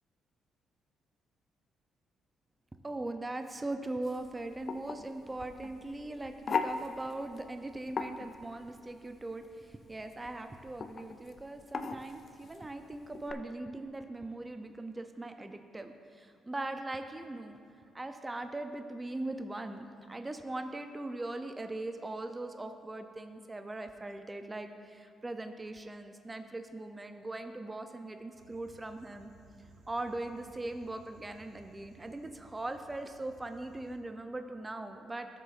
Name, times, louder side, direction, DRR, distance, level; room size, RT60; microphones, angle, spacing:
voice 1, 2.8-17.6 17.9-29.3 29.9-35.3, right 2 dB, 20° right, 7 dB, 0.4 m, -40 dB
sound 1, 4.0-13.3, left 5 dB, 45° left, 0.5 m, -40 dB
sound 2, 28.3-34.0, right 4 dB, 75° right, 0.9 m, -60 dB
13.5 x 6.7 x 2.5 m, 2.3 s
cardioid pair, 90°, 0 cm